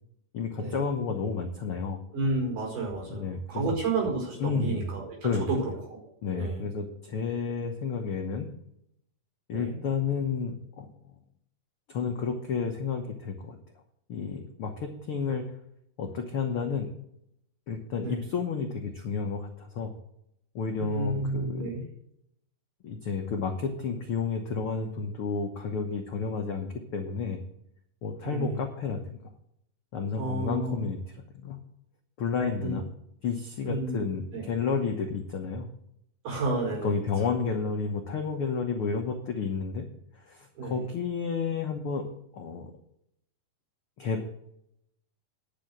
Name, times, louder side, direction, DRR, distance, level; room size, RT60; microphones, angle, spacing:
voice 1, 0.3-2.0 3.1-3.6 4.4-4.8 5.2-5.5 6.2-8.5 9.5-10.9 11.9-13.6 14.1-15.4 16.0-16.9 17.7-19.9 20.5-21.7 22.8-27.4 28.0-29.0 29.9-31.0 31.3-31.6 32.2-32.9 33.2-35.7 36.7-39.9 40.1-42.1 42.3-42.7 44.0-44.2, left 5 dB, 85° left, 3 dB, 1.2 m, -31 dB
voice 2, 2.1-6.1 6.4-6.7 9.5-9.8 18.0-18.2 20.8-21.8 28.2-28.6 30.2-30.9 32.6-32.8 33.6-34.5 36.2-37.0 40.6-40.9, right 2 dB, 60° right, 0 dB, 6.2 m, -31 dB
10.5 x 6.4 x 7.8 m, 0.74 s
omnidirectional pair, 4.1 m